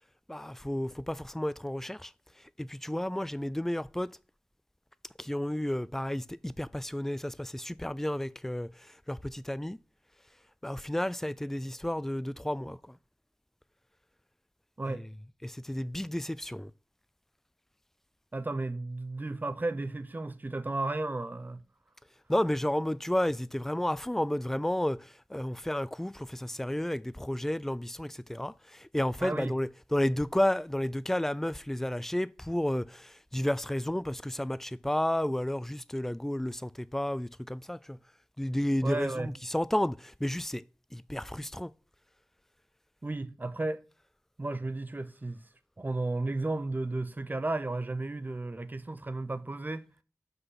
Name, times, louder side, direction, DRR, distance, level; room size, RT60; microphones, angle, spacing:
voice 1, 0.3-2.1 2.6-4.1 5.2-8.7 9.1-9.8 10.6-12.8 14.9-15.0 15.4-16.7 22.3-28.5 28.8-38.0 38.4-40.6 40.9-41.7, left 1 dB, 5° left, 0.4 m, -32 dB
voice 2, 18.3-21.6 29.2-29.5 38.8-39.3 43.0-43.8 44.4-45.5 45.8-49.9, right 2 dB, 35° right, 0.8 m, -33 dB
6.0 x 5.5 x 5.8 m
wide cardioid pair, 60°, 5 cm